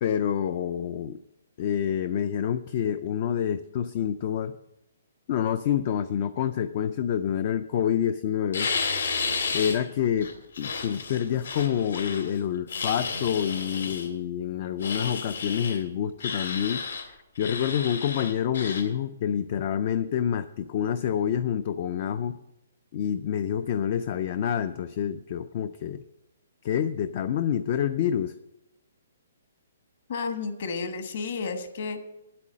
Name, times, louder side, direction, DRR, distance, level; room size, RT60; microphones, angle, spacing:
voice 1, 0.0-1.2 1.6-4.5 5.3-8.7 9.5-10.3 10.6-22.3 22.9-26.0 26.6-28.3, left 9 dB, 30° left, 13 dB, 0.3 m, -27 dB
sound 1, 8.5-9.8 10.2-12.3 12.7-14.1 14.8-15.8 16.2-17.0 17.4-18.8, left 5 dB, 80° left, 2.7 m, -32 dB
voice 2, 30.1-32.0, left 4 dB, 45° left, 7 dB, 1.3 m, -32 dB
9.7 x 8.4 x 7.5 m, 0.92 s
hypercardioid pair, 175°, 0 cm